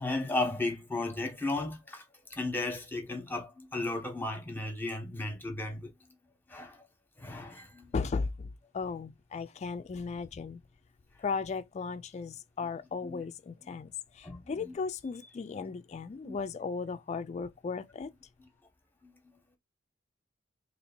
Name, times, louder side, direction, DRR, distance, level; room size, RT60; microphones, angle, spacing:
voice 1, 0.0-2.0 2.3-5.9 6.5-6.8 7.2-7.9 13.0-13.2 14.2-14.7 16.2-16.4 19.0-19.1, left 2 dB, 10° left, 0.9 m, -35 dB
voice 2, 7.9-10.6 11.2-18.1, left 4 dB, 35° left, 0.3 m, -36 dB
2.9 x 2.8 x 4.2 m
head